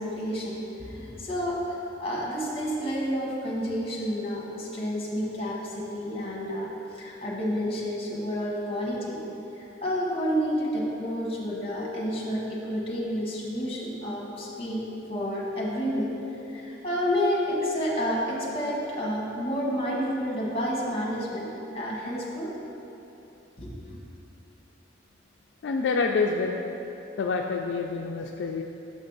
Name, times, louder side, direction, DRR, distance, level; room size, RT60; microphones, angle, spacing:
voice 1, 0.0-9.2 9.8-16.1 16.5-21.5 21.7-22.5 23.6-24.0, equal, 30° left, -3 dB, 1.1 m, -30 dB
voice 2, 25.6-26.6 27.2-28.6, left 4 dB, 70° left, 2 dB, 0.3 m, -27 dB
6.4 x 5.4 x 4.0 m, 3.0 s
head